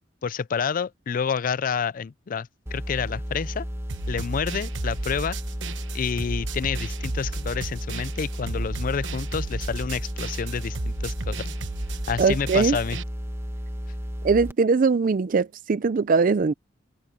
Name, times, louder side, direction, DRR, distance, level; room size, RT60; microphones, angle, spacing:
voice 1, 0.2-3.7 4.1-5.4 5.9-11.6 12.1-13.0, left 6 dB, 45° left, 0.4 m, -29 dB
sound 1, 2.7-14.5, equal, 15° right, 1.3 m, -33 dB
sound 2, 3.9-13.0, right 3 dB, 75° right, 1.1 m, -35 dB
voice 2, 12.2-12.8 14.2-16.5, right 4 dB, 45° right, 0.4 m, -21 dB
head